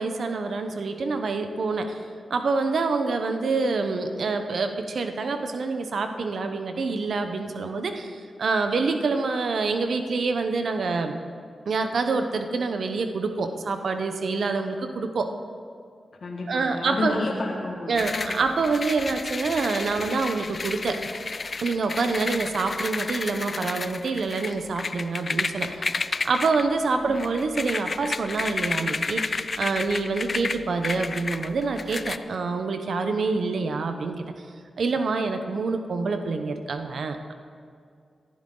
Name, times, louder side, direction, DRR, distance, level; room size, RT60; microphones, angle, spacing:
voice 1, 0.0-2.0 2.3-11.2 11.7-15.3 16.5-17.2 17.9-21.0 21.6-25.9 26.2-34.3 34.8-37.3, right 4 dB, 75° right, 7 dB, 0.9 m, -26 dB
voice 2, 16.2-18.5 22.0-22.3 27.1-27.2, left 2 dB, 65° left, -2 dB, 1.9 m, -31 dB
sound 1, 18.0-32.2, left 4 dB, 50° left, 0.4 m, -32 dB
18.0 x 11.5 x 3.9 m, 2.2 s
cardioid pair, 55°, 0 cm